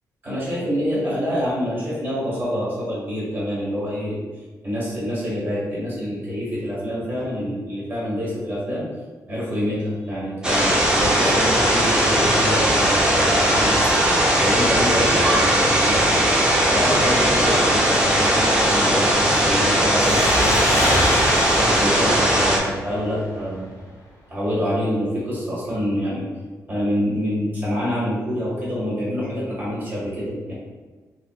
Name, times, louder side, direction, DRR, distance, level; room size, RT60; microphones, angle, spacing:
voice 1, 0.2-4.3 4.6-8.9 9.3-13.7 14.4-20.9 21.6-23.7 24.3-26.2 26.7-30.5, equal, 30° right, -7 dB, 1.5 m, -26 dB
sound 1, 10.4-22.6, right 1 dB, 15° right, 0.6 m, -18 dB
sound 2, 20.0-23.4, left 1 dB, 70° left, 0.8 m, -25 dB
3.6 x 2.9 x 2.3 m, 1.3 s
wide cardioid pair, 140°, 6 cm